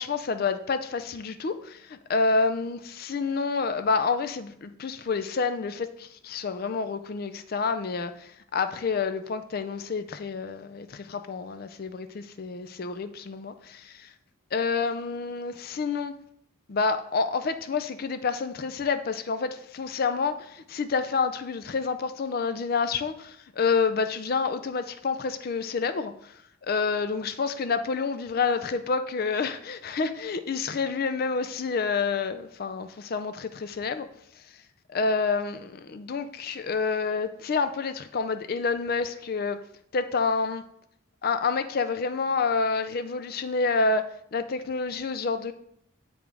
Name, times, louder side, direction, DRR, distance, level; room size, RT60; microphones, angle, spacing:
voice 1, 0.0-14.1 14.5-16.1 16.7-26.3 26.6-34.1 34.9-39.6 39.9-40.6 41.2-44.1 44.3-45.5, left 4 dB, 45° left, 0.4 m, -28 dB
7.6 x 5.0 x 3.4 m
head